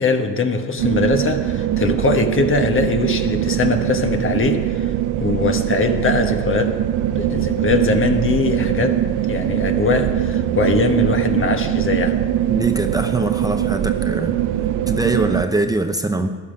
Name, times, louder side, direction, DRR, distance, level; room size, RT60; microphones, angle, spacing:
voice 1, 0.0-4.9 5.2-6.7 7.1-9.0 9.3-12.2, left 4 dB, 45° left, 6 dB, 1.3 m, -21 dB
sound 1, 0.8-15.5, right 11 dB, 90° right, 0.6 m, -21 dB
voice 2, 12.5-14.4 14.9-16.3, right 2 dB, 10° right, 6 dB, 0.7 m, -22 dB
13.0 x 11.5 x 5.1 m, 1.5 s
cardioid pair, 90°, 30 cm